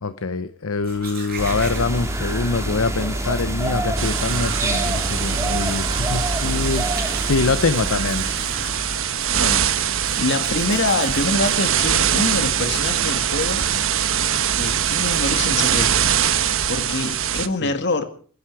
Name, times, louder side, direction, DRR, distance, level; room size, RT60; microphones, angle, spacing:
voice 1, 0.0-8.3 16.9-17.0 17.6-17.7, left 4 dB, 70° left, 12 dB, 0.8 m, -24 dB
Domestic sounds home sounds, 0.7-16.8, right 4 dB, 45° right, 7.8 m, -41 dB
sound 1, 1.4-9.5, right 1 dB, 15° right, 2.4 m, -27 dB
sound 2, 4.0-17.5, right 9 dB, 65° right, 1.1 m, -22 dB
voice 2, 9.3-9.7 10.2-13.7 14.5-16.1 16.7-18.0, left 2 dB, 55° left, 8 dB, 2.2 m, -25 dB
28.5 x 10.5 x 4.8 m, 0.44 s
head